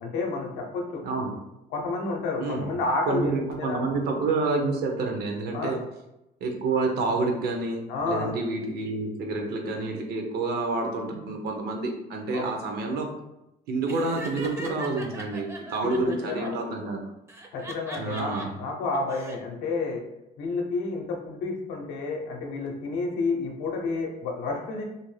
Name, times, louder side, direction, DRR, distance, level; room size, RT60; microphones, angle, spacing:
voice 1, 0.0-1.0 1.7-3.8 5.5-5.8 7.9-8.3 12.3-12.5 15.8-16.6 17.5-18.3 18.6-20.0 20.4-24.8, left 3 dB, 90° left, 1 dB, 0.6 m, -30 dB
voice 2, 2.4-2.7 3.1-5.8 6.4-13.1 13.7-17.0 18.0-18.5, right 3 dB, 70° right, 2 dB, 0.6 m, -28 dB
Laughter, 13.9-16.5 17.3-18.5 18.9-19.4, right 2 dB, 15° right, 0.4 m, -40 dB
2.6 x 2.1 x 3.1 m, 0.90 s
cardioid pair, 110°, 17 cm